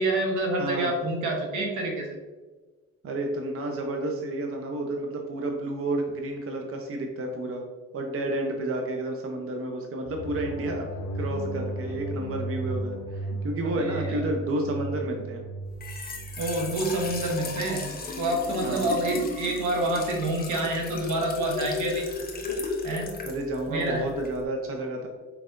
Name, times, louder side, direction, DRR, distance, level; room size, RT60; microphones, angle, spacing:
voice 1, 0.0-2.2 13.7-14.2 16.4-17.8 18.2-22.1 22.8-23.1 23.7-24.0, right 1 dB, 80° right, 2 dB, 0.9 m, -27 dB
voice 2, 0.6-0.9 3.0-7.6 7.9-10.9 11.1-15.4 18.6-19.0 23.2-25.1, right 1 dB, 45° right, 2 dB, 0.7 m, -31 dB
sound 1, 10.1-17.3, right 2 dB, 80° left, 0.5 m, -35 dB
Trickle dribble / Fill (with liquid), 15.7-24.4, left 3 dB, 30° left, 0.8 m, -35 dB
4.2 x 4.1 x 2.5 m, 1.3 s
cardioid pair, 90°, 30 cm